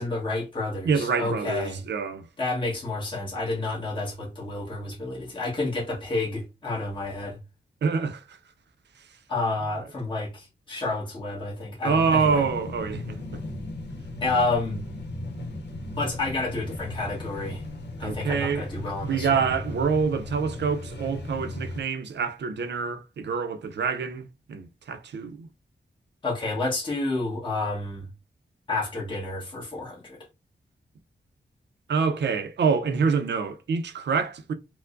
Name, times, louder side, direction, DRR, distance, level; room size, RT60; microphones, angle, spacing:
voice 1, 0.0-1.8 2.4-7.4 9.3-12.4 14.2-14.9 16.0-17.6 18.0-19.5 26.2-28.1 28.7-30.2, left 2 dB, 25° left, 1.2 m, -30 dB
voice 2, 0.8-2.3 7.8-8.4 11.8-13.4 18.0-18.7 19.0-25.5 31.9-34.5, right 5 dB, 80° right, 0.5 m, -26 dB
sound 1, 11.9-21.8, left 1 dB, 80° left, 0.8 m, -36 dB
4.5 x 2.1 x 2.5 m
wide cardioid pair, 135°, 18 cm